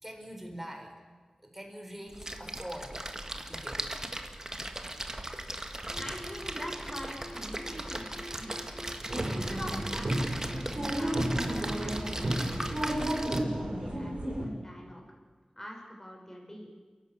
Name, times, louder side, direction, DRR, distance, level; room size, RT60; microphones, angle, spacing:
voice 1, 0.0-0.9 1.4-3.0 3.5-3.9, equal, 10° right, 3 dB, 4.4 m, -43 dB
Splash splatter, 2.1-13.4, right 1 dB, 25° right, 1.8 m, -38 dB
sound 1, 5.9-12.9, left 1 dB, 70° left, 4.6 m, -46 dB
voice 2, 6.0-8.6 9.2-12.4 12.9-15.0 15.6-16.7, equal, 20° left, 0 dB, 5.8 m, -44 dB
sound 2, 9.1-14.5, right 1 dB, 70° right, 7.7 m, -32 dB
28.5 x 11.5 x 8.5 m, 1.4 s
wide cardioid pair, 50°, 2 cm